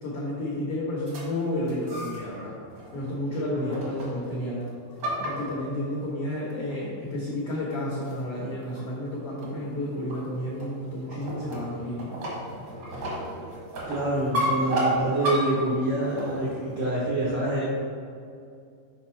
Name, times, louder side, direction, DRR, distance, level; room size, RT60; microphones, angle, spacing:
voice 1, 0.0-2.5 2.9-4.7 5.2-12.1, left 1 dB, 80° left, -5 dB, 1.3 m, -31 dB
sound 1, 1.1-2.3 2.7-3.0 3.7-4.3 4.7-6.0 6.7-6.8 7.3-7.4 8.0-8.3 8.6-8.8 9.4-16.8, right 1 dB, 60° right, 1.1 m, -32 dB
voice 2, 3.4-3.7 12.9-13.2 13.8-17.6, right 1 dB, 75° right, -6 dB, 1.3 m, -27 dB
6.5 x 5.2 x 4.4 m, 2.4 s
omnidirectional pair, 4.3 m